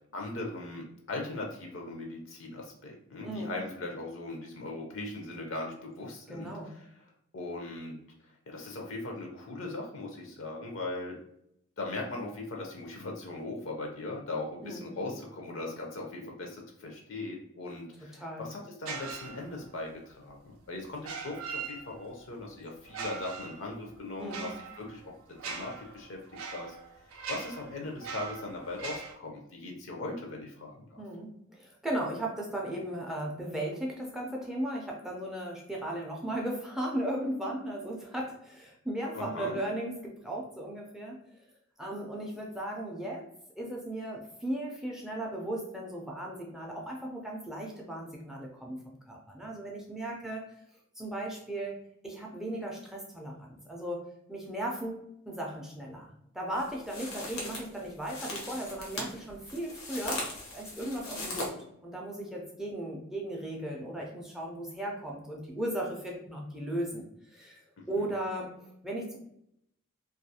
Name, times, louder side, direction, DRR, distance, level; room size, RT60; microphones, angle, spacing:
voice 1, 0.1-6.9 7.3-11.2 11.8-25.1 25.4-26.2 26.5-26.8 27.3-31.0 39.1-39.6 67.8-68.1, left 2 dB, 65° left, 1 dB, 0.5 m, -39 dB
voice 2, 3.2-3.5 6.3-6.7 14.6-14.9 18.2-18.5 24.2-24.5 31.0-41.2 41.8-43.3 43.6-50.5 51.0-51.7 52.0-54.0 54.3-60.2 60.5-61.5 61.8-69.2, right 1 dB, ahead, -2 dB, 0.4 m, -36 dB
sound 1, 18.9-19.8 21.0-22.2 22.8-29.2, right 5 dB, 90° right, 0.4 m, -41 dB
sound 2, 56.5-61.5, left 2 dB, 90° left, 0.8 m, -39 dB
2.3 x 2.3 x 2.7 m, 0.77 s
head